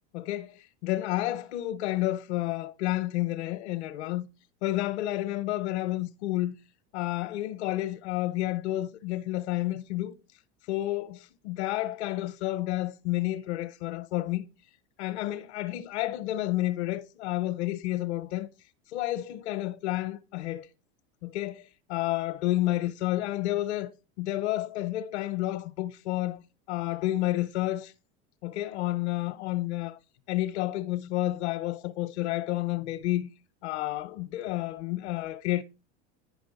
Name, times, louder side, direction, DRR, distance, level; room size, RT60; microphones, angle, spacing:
voice 1, 0.1-4.3 4.6-6.5 6.9-10.2 10.7-14.4 15.0-18.5 18.9-20.7 21.2-23.9 24.2-27.9 28.4-30.0 30.3-33.3 33.6-35.6, left 16 dB, 85° left, 0.8 m, -30 dB
10.5 x 5.2 x 5.2 m
supercardioid pair, 120°, 33 cm